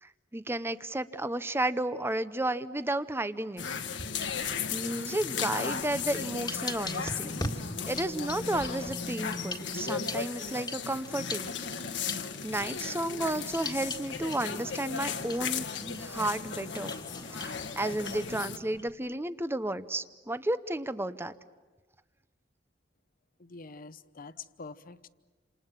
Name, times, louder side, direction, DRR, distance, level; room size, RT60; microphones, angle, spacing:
voice 1, 0.0-3.6 4.2-4.3 4.7-7.4 7.9-11.5 12.1-16.9 17.4-21.3, right 1 dB, 15° right, 13 dB, 0.8 m, -33 dB
sound 1, 3.6-18.6, left 6 dB, 70° left, 1.5 m, -36 dB
sound 2, 3.8-4.7 5.1-18.9, left 2 dB, 20° left, 1.8 m, -43 dB
voice 2, 23.4-25.1, left 4 dB, 50° left, 14 dB, 0.9 m, -46 dB
28.5 x 27.5 x 7.4 m, 1.3 s
head